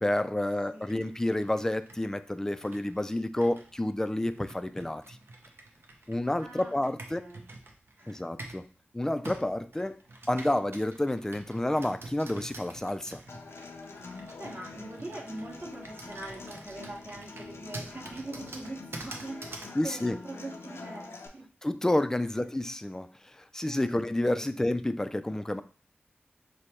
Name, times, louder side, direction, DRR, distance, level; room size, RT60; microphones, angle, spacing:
voice 1, 0.0-5.0 6.1-7.2 8.1-8.6 8.9-10.0 10.3-13.2 19.8-20.2 21.6-25.6, left 1 dB, 10° left, 11 dB, 0.3 m, -29 dB
voice 2, 0.7-1.1 6.4-6.7 7.1-7.5 8.0-8.2 13.8-21.5 22.3-22.4 23.7-24.7, right 2 dB, 50° right, -3 dB, 1.4 m, -43 dB
Computer keyboard, 0.8-8.7 9.2-19.8, right 2 dB, 70° right, 0.7 m, -47 dB
Human voice / Acoustic guitar, 13.3-21.3, left 4 dB, 80° left, 0.5 m, -46 dB
4.9 x 2.1 x 4.3 m, 0.40 s
wide cardioid pair, 75°, 4 cm